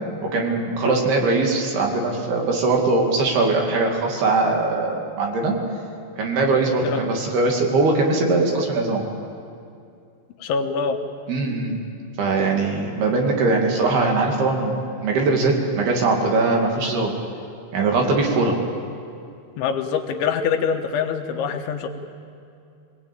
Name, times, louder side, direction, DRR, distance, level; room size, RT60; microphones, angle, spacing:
voice 1, 0.3-5.6 6.2-9.0 11.3-11.8 12.2-14.8 15.0-17.1 17.7-18.6, right 3 dB, 60° right, 1 dB, 4.1 m, -21 dB
voice 2, 10.4-11.0 19.6-21.9, left 6 dB, 75° left, 5 dB, 3.5 m, -24 dB
24.5 x 19.5 x 8.9 m, 2.5 s
omnidirectional pair, 5.5 m